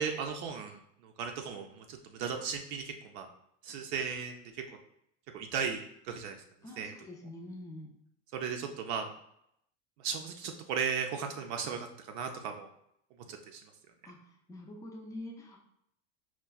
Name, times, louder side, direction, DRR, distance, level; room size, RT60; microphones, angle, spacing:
voice 1, 0.0-3.3 3.6-4.4 5.3-6.4 6.8-6.9 8.3-9.1 10.0-12.7 13.3-13.6, right 6 dB, 60° right, 4 dB, 0.5 m, -36 dB
voice 2, 6.6-7.9 14.0-15.6, left 1 dB, 10° left, 1 dB, 0.3 m, -46 dB
4.4 x 2.2 x 2.3 m, 0.74 s
supercardioid pair, 120°, 38 cm